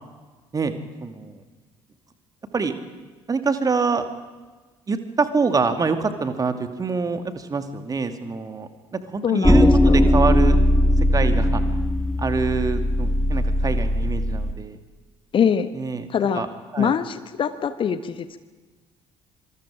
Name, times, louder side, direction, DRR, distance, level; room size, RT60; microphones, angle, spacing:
voice 1, 1.0-1.4 2.5-2.7 3.3-4.1 4.9-10.6 11.1-11.6 12.2-14.8 15.7-16.1 16.3-16.5 16.7-16.9, right 4 dB, 25° right, 8 dB, 2.4 m, -25 dB
voice 2, 9.2-10.1 15.3-15.7 16.1-16.5 16.8-18.4, left 7 dB, 40° left, 12 dB, 1.3 m, -23 dB
sound 1, 9.4-14.5, left 1 dB, 5° left, 1.3 m, -19 dB
26.0 x 25.5 x 5.0 m, 1.3 s
figure-of-eight pair, 55°, 14 cm